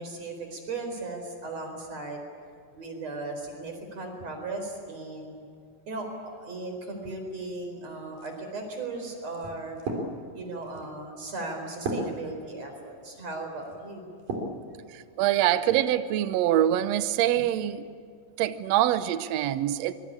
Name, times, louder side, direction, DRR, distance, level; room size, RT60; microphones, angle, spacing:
voice 1, 0.0-2.2 2.8-5.4 5.9-9.8 10.3-14.1 17.3-17.4, right 2 dB, 45° right, 4 dB, 5.4 m, -37 dB
sound 1, 8.1-14.6 15.1-15.8, right 2 dB, 65° right, 5.1 m, -37 dB
voice 2, 14.9-17.8 18.4-19.9, right 12 dB, 85° right, 12 dB, 1.5 m, -24 dB
25.5 x 22.5 x 8.8 m, 2.1 s
omnidirectional pair, 4.1 m